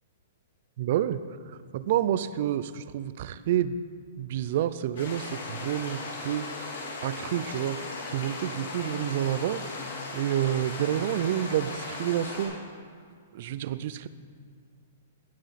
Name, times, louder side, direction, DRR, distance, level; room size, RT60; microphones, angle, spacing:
voice 1, 0.8-3.8 4.2-6.7 7.0-9.6 10.1-12.6 13.3-14.1, right 11 dB, 50° right, 14 dB, 0.4 m, -29 dB
sound 1, 5.0-12.5, left 3 dB, 75° left, 3.0 m, -37 dB
18.0 x 6.1 x 4.1 m, 2.1 s
hypercardioid pair, 155°, 0 cm